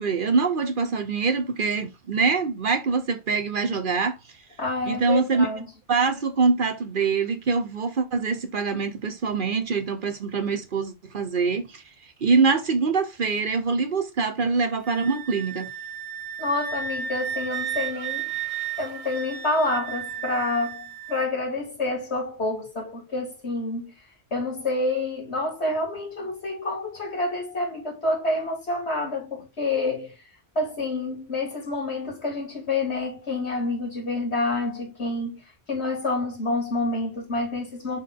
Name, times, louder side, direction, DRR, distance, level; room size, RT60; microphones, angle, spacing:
voice 1, 0.0-4.2 4.9-5.5 5.9-11.8 12.2-15.7, right 4 dB, 50° right, 1.0 m, -24 dB
voice 2, 4.6-5.7 16.4-23.9 24.3-30.2 30.5-38.0, left 2 dB, 75° left, 3.3 m, -28 dB
Wind instrument woodwind instrument, 14.8-21.2, right 8 dB, 85° right, 1.0 m, -33 dB
6.6 x 3.9 x 3.6 m
omnidirectional pair, 1.1 m